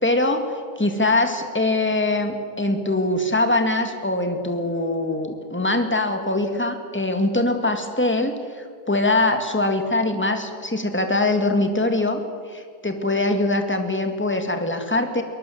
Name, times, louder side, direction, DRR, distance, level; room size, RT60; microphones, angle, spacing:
voice 1, 0.0-0.5 0.8-12.2 12.5-15.2, left 2 dB, 5° left, 6 dB, 1.8 m, -22 dB
23.0 x 19.5 x 7.2 m, 2.1 s
omnidirectional pair, 1.8 m